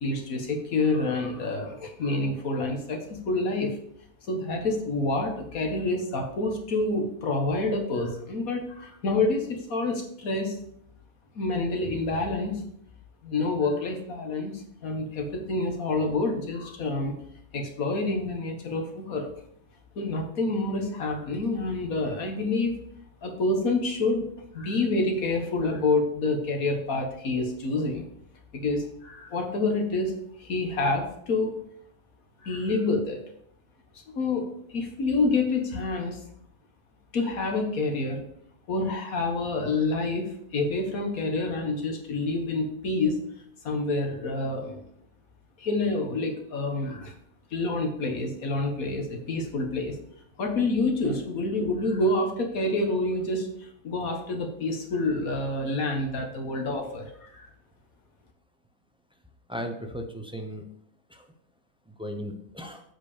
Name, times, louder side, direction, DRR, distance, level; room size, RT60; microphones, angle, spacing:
voice 1, 0.0-3.8 4.3-10.6 11.4-12.6 13.2-17.2 17.5-19.3 20.0-22.8 23.2-24.3 24.5-28.1 28.5-31.6 32.4-33.2 34.1-36.2 37.1-38.2 38.7-43.2 43.6-44.8 45.6-47.1 47.5-50.0 50.4-57.5, left 2 dB, 90° left, 3 dB, 1.9 m, -28 dB
voice 2, 59.5-60.6 61.1-61.3 61.9-62.8, equal, 5° right, 4 dB, 0.6 m, -36 dB
7.8 x 4.8 x 5.0 m, 0.70 s
omnidirectional pair, 1.4 m